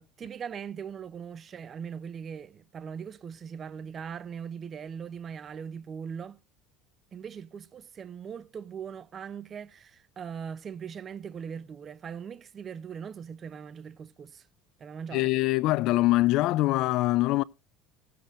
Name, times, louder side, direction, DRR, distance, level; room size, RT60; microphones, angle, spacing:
voice 1, 0.0-6.4 7.1-14.5 14.8-15.3, right 7 dB, 35° right, 0.6 m, -40 dB
voice 2, 15.1-17.4, left 18 dB, 60° left, 0.4 m, -23 dB
17.5 x 7.6 x 2.5 m
supercardioid pair, 120°, 0 cm